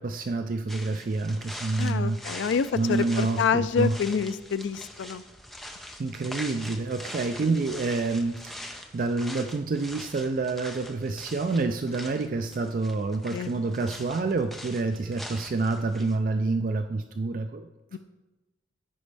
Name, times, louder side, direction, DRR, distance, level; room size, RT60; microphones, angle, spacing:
voice 1, 0.0-2.5 2.7-4.0 6.0-18.0, right 3 dB, 45° right, 7 dB, 0.3 m, -28 dB
sound 1, 0.7-16.2, equal, ahead, 0.5 m, -43 dB
voice 2, 1.8-5.2 7.4-7.6 13.3-13.5 17.9-18.0, left 6 dB, 80° left, 14 dB, 0.4 m, -27 dB
14.0 x 5.2 x 3.3 m, 1.1 s
head